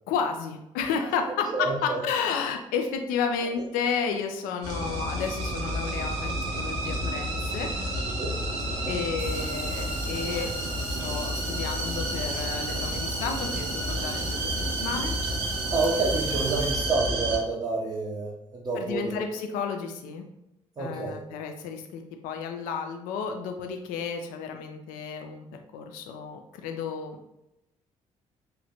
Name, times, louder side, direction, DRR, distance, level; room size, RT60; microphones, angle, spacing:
voice 1, 0.1-7.7 8.9-15.2 18.8-20.3 20.8-25.5 25.7-27.3, left 6 dB, 60° left, 5 dB, 0.4 m, -32 dB
voice 2, 1.5-2.0 8.2-8.9 15.7-19.2 20.8-21.2, right 3 dB, 25° right, -4 dB, 0.6 m, -29 dB
sound 1, 4.6-17.4, right 1 dB, 65° right, 0.6 m, -30 dB
Water tap faucet, 9.2-16.8, left 2 dB, 30° left, 0.8 m, -44 dB
3.1 x 2.1 x 2.8 m, 0.87 s
figure-of-eight pair, 40°, 16 cm